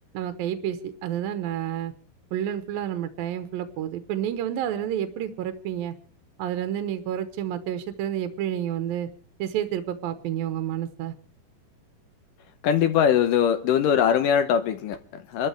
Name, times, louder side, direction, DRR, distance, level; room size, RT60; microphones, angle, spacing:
voice 1, 0.1-1.9 2.3-5.9 6.4-9.1 9.4-11.1, right 10 dB, 75° right, 2.7 m, -29 dB
voice 2, 12.6-15.5, left 8 dB, 70° left, 2.2 m, -22 dB
29.0 x 13.0 x 3.3 m
omnidirectional pair, 4.4 m